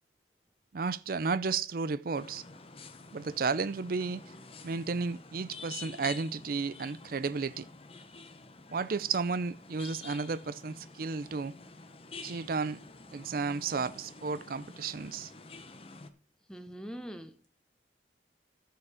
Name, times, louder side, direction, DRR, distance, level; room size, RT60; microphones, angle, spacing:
voice 1, 0.7-2.4 3.1-4.3 4.6-7.7 8.7-11.5 12.2-12.8 13.1-15.3, right 4 dB, 50° right, 0.5 m, -33 dB
sound 1, 2.1-16.1, left 4 dB, 30° left, 0.8 m, -49 dB
voice 2, 16.5-17.5, equal, 5° left, 0.9 m, -43 dB
14.0 x 4.8 x 4.9 m
head